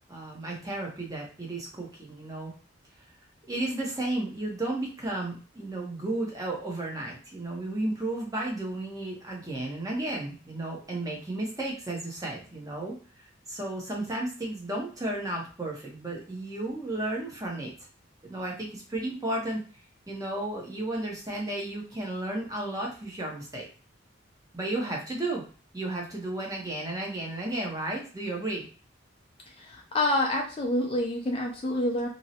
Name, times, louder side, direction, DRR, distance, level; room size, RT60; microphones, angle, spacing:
voice 1, 0.1-2.5 3.5-13.0 13.5-17.7 18.2-19.6 20.1-23.7 24.5-25.4 25.7-28.7, right 1 dB, 15° right, -2 dB, 0.6 m, -33 dB
voice 2, 29.6-32.1, left 1 dB, 30° left, 1 dB, 0.4 m, -27 dB
2.6 x 2.0 x 2.7 m, 0.39 s
head